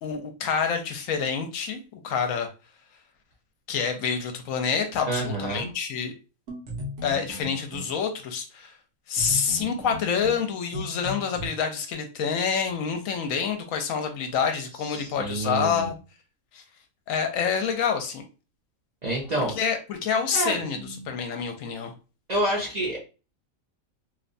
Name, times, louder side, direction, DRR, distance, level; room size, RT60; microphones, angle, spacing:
voice 1, 0.0-2.5 3.7-6.1 7.0-8.7 9.1-15.9 16.5-16.6 17.1-18.2 19.6-21.9, left 6 dB, 75° left, 6 dB, 1.0 m, -27 dB
voice 2, 5.1-5.7 14.9-15.9 19.0-19.6 20.3-21.1 22.3-23.0, right 1 dB, 40° right, -4 dB, 0.6 m, -28 dB
sound 1, 6.5-8.0 9.2-11.5, left 1 dB, 65° right, 1.1 m, -36 dB
2.9 x 2.2 x 2.5 m, 0.32 s
omnidirectional pair, 1.4 m